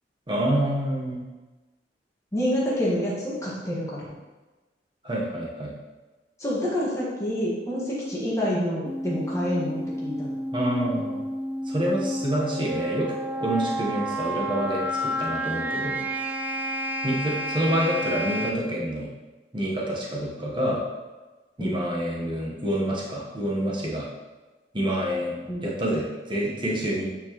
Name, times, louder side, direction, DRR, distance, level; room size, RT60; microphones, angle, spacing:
voice 1, 0.3-1.2 5.0-5.7 10.5-11.2 11.7-16.0 17.0-19.1 19.5-20.8 21.6-24.1 24.7-25.4 25.6-27.1, right 1 dB, 30° right, -3 dB, 1.1 m, -27 dB
voice 2, 2.3-4.0 6.4-10.3 21.6-21.8 25.5-25.7, equal, 20° left, -7 dB, 1.6 m, -27 dB
sound 1, 8.9-18.5, equal, 10° right, 0.5 m, -30 dB
8.8 x 4.5 x 3.0 m, 1.2 s
head